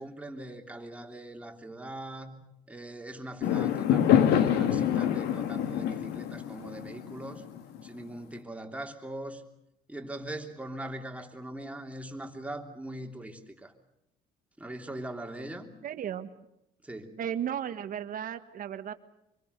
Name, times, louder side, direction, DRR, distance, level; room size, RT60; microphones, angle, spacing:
voice 1, 0.0-2.4 2.7-7.5 7.8-9.4 9.9-13.7 14.6-15.7 16.8-17.2, right 1 dB, 10° right, 3 dB, 3.2 m, -41 dB
Fireworks, 3.4-7.9, left 10 dB, 85° left, 1.8 m, -26 dB
voice 2, 15.8-16.3 17.2-18.9, right 9 dB, 55° right, 10 dB, 1.7 m, -34 dB
25.5 x 23.5 x 6.8 m, 0.84 s
cardioid pair, 110°, 17 cm